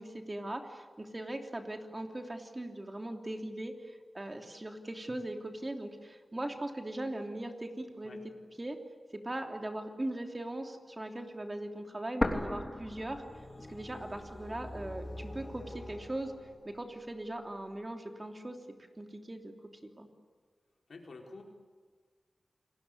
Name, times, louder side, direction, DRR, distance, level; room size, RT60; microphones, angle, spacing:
voice 1, 0.0-8.2 8.6-8.8 9.2-13.2 13.7-16.3 16.6-18.6 19.0-19.5 19.8-20.1, right 1 dB, 30° right, 4 dB, 3.1 m, -40 dB
sound 1, 12.2-14.2 14.4-14.5 15.3-16.2, left 1 dB, 20° left, 3.2 m, -35 dB
sound 2, 12.5-17.1, left 1 dB, 40° left, 5.5 m, -47 dB
voice 2, 20.9-21.4, left 3 dB, 85° left, 2 dB, 4.4 m, -48 dB
29.0 x 20.0 x 9.9 m, 1.5 s
wide cardioid pair, 70°, 0 cm